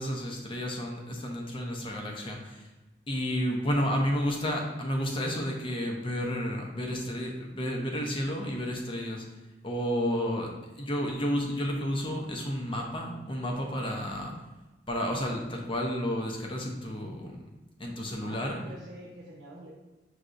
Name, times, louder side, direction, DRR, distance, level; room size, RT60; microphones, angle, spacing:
voice 1, 0.0-2.7 3.1-9.2 9.6-14.3 14.9-17.4 17.8-18.6, equal, 30° left, 1 dB, 0.7 m, -31 dB
voice 2, 18.2-19.7, equal, 55° right, -4 dB, 0.8 m, -46 dB
6.2 x 3.3 x 2.6 m, 1.1 s
head